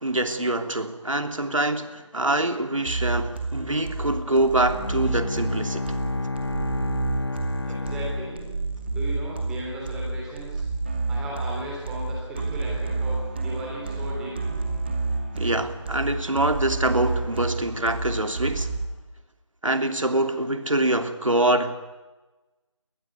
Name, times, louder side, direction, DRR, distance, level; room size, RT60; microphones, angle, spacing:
voice 1, 0.0-6.0 15.3-18.7 19.6-21.7, right 1 dB, 80° right, 2.8 m, -25 dB
sound 1, 2.9-18.9, right 3 dB, 20° right, 2.4 m, -29 dB
Bowed string instrument, 4.7-9.1, left 3 dB, 55° left, 0.9 m, -31 dB
voice 2, 7.7-8.4 8.9-10.7 11.1-14.4, right 1 dB, 5° right, 3.2 m, -36 dB
22.5 x 19.5 x 9.7 m
figure-of-eight pair, 170°, 16 cm